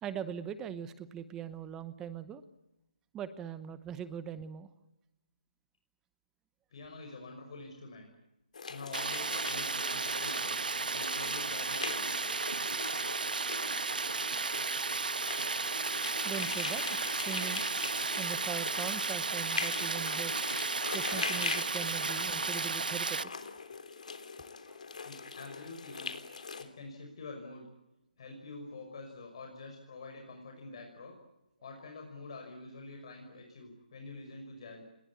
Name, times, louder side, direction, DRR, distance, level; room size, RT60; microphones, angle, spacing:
voice 1, 0.0-2.4 3.1-4.7 16.2-17.6 18.2-20.4 20.9-23.3 24.7-24.8, right 8 dB, 10° right, 14 dB, 0.9 m, -41 dB
voice 2, 6.7-8.1 8.7-12.2 25.0-27.7 28.2-31.2 31.6-34.8, left 3 dB, 40° left, 3 dB, 5.8 m, -47 dB
sound 1, 8.5-26.6, left 5 dB, 60° left, 3.6 m, -42 dB
Stream, 8.9-23.2, right 4 dB, 80° right, 1.3 m, -34 dB
29.5 x 21.0 x 8.5 m, 0.96 s
hypercardioid pair, 165°, 5 cm